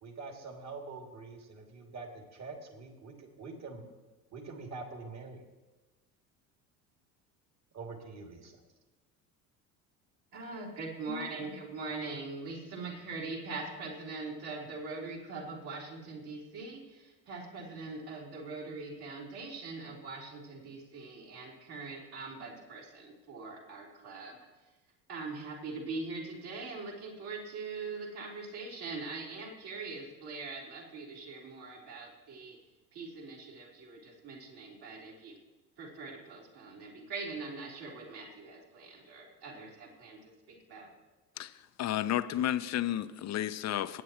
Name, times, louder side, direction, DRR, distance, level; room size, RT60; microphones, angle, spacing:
voice 1, 0.0-3.8 4.3-5.4 7.7-8.6, right 3 dB, 35° right, 3 dB, 2.4 m, -45 dB
voice 2, 10.3-24.4 25.1-32.6 32.9-35.4 35.8-40.2 40.5-40.9, right 3 dB, 50° right, -3 dB, 3.7 m, -42 dB
voice 3, 41.8-44.0, left 12 dB, 35° left, 13 dB, 0.7 m, -32 dB
23.0 x 9.3 x 3.0 m, 1.2 s
figure-of-eight pair, 65°, 49 cm